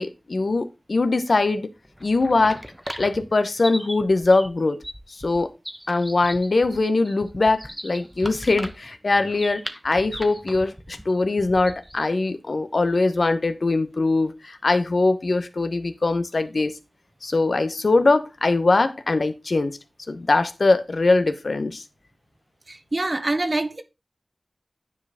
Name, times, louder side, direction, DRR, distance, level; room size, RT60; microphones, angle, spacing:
voice 1, 0.0-1.7 2.0-2.6 3.0-4.8 5.1-5.5 5.9-16.8 17.2-19.7 20.1-21.8, left 3 dB, 80° left, 0.8 m, -22 dB
sound 1, 1.8-12.1, equal, 10° right, 0.9 m, -38 dB
voice 2, 22.7-23.8, right 2 dB, 50° right, 0.9 m, -25 dB
9.6 x 4.7 x 3.5 m
wide cardioid pair, 45°, 0 cm